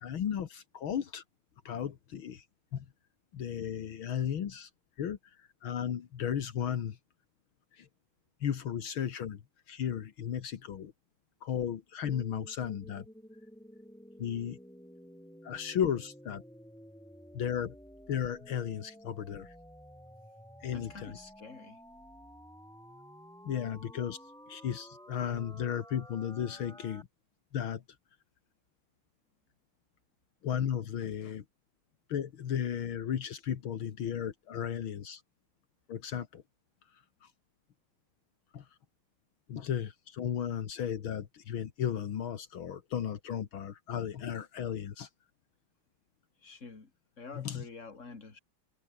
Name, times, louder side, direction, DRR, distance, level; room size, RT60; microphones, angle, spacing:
voice 1, 0.0-1.2 1.7-2.5 2.7-2.9 3.3-4.7 5.0-7.0 7.7-7.9 8.4-9.4 9.7-10.9 11.4-13.1 14.2-14.6 15.4-16.4 17.3-17.8 18.1-19.5 20.6-21.2 23.4-24.2 24.5-27.1 27.5-27.8 30.4-31.4 32.1-35.2 35.9-36.4 37.2-37.3 38.5-38.7 39.5-45.1 47.3-47.6, left 8 dB, 75° left, 2.3 m, -35 dB
sound 1, 12.0-27.0, equal, ahead, 6.2 m, -53 dB
voice 2, 20.7-21.8 46.4-46.9 47.2-48.4, left 4 dB, 35° left, 3.3 m, -48 dB
omnidirectional pair, 2.3 m